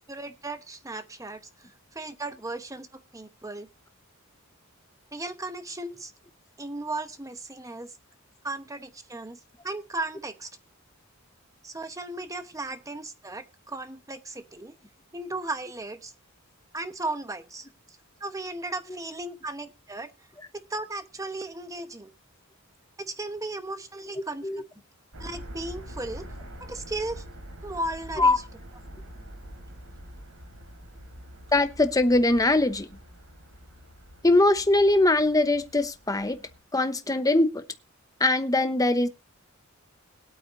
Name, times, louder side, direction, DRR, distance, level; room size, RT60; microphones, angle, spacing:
voice 1, 0.1-1.4 1.9-3.7 5.1-6.1 6.6-7.9 8.4-10.5 11.6-14.8 15.1-16.1 16.7-17.7 18.2-20.1 20.5-22.1 23.0-24.5 25.2-26.2 26.6-27.2 27.6-28.4, right 2 dB, 15° right, 1.0 m, -36 dB
sound 1, 25.1-36.6, equal, 80° right, 3.7 m, -45 dB
voice 2, 31.5-32.9 34.2-36.4 36.7-37.6 38.2-39.1, left 2 dB, 15° left, 0.9 m, -21 dB
21.5 x 8.5 x 2.6 m
head